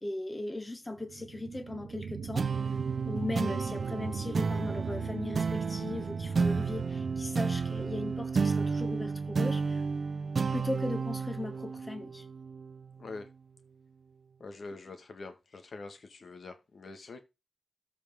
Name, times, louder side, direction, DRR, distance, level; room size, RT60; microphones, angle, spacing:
voice 1, 0.0-2.5 3.0-9.8 10.5-12.2, left 2 dB, 20° left, 1.5 m, -38 dB
sound 1, 0.9-10.0 10.5-10.6, right 5 dB, 90° right, 1.1 m, -40 dB
sound 2, 2.4-13.2, right 5 dB, 55° right, 0.7 m, -32 dB
voice 2, 14.4-17.2, left 3 dB, 60° left, 1.8 m, -45 dB
14.0 x 4.8 x 3.7 m
wide cardioid pair, 90°, 0 cm